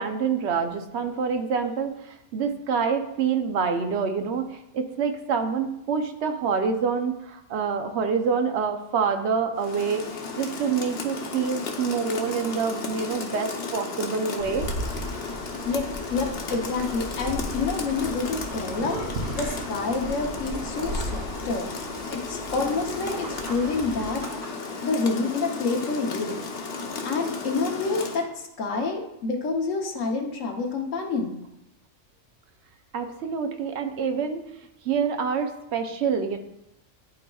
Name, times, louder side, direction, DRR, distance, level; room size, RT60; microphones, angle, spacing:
voice 1, 0.0-4.5 4.7-10.1 10.4-14.7 32.9-34.5 34.8-36.4, right 6 dB, 65° right, 7 dB, 0.9 m, -26 dB
Rain, 9.6-28.3, left 4 dB, 60° left, 1.0 m, -34 dB
sound 1, 14.4-24.2, right 1 dB, 85° right, 1.3 m, -36 dB
voice 2, 15.6-19.0 19.4-21.7 22.1-24.4 24.8-26.4 27.0-31.3, left 4 dB, 85° left, 0 dB, 1.3 m, -28 dB
sound 2, 18.7-20.6 21.4-21.5 23.2-24.9, right 1 dB, 35° right, 0.9 m, -43 dB
11.5 x 4.1 x 2.3 m, 0.85 s
omnidirectional pair, 1.3 m